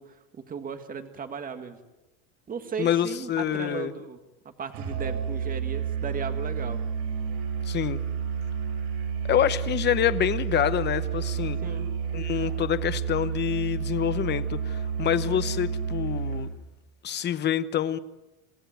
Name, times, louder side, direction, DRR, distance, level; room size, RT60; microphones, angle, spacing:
voice 1, 0.0-1.8 2.5-4.2 4.5-6.8 11.6-11.9, right 6 dB, 20° right, 8 dB, 1.8 m, -36 dB
voice 2, 2.8-3.9 7.7-8.0 9.3-11.6 12.1-16.5 17.0-18.0, left 10 dB, 25° left, 13 dB, 0.9 m, -26 dB
Musical instrument, 4.7-16.6, right 7 dB, 80° right, 7.5 m, -30 dB
28.0 x 16.0 x 9.3 m, 1.0 s
cardioid pair, 155°, 44 cm